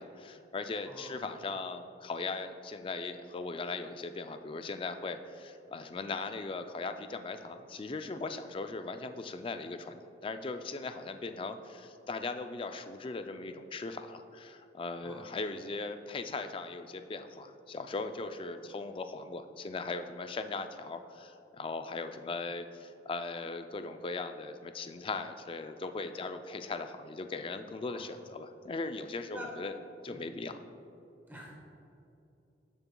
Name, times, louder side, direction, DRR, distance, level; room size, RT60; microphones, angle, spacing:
voice 1, 0.0-29.7 30.0-30.6, left 3 dB, 30° left, 8 dB, 0.3 m, -39 dB
voice 2, 0.8-1.3 15.0-15.3 27.9-28.1 29.3-29.5 30.1-30.3 31.3-31.5, equal, 10° right, -2 dB, 0.9 m, -47 dB
12.5 x 6.9 x 2.2 m, 2.8 s
head